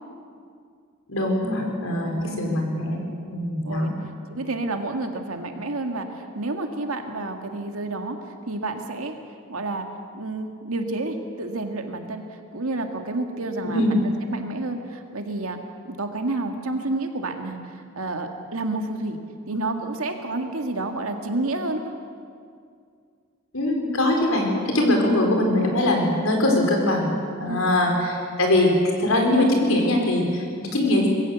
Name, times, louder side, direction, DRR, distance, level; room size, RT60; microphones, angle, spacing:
voice 1, 1.1-3.9 13.6-14.0 23.5-27.1 27.4-31.1, left 1 dB, 80° left, 1 dB, 4.4 m, -22 dB
voice 2, 2.0-2.6 3.6-3.9 4.3-9.1 9.5-9.9 10.1-15.6 15.8-19.2 19.5-21.8 27.5-27.7, right 2 dB, 90° right, 4 dB, 2.0 m, -30 dB
21.5 x 15.5 x 8.2 m, 2.3 s
head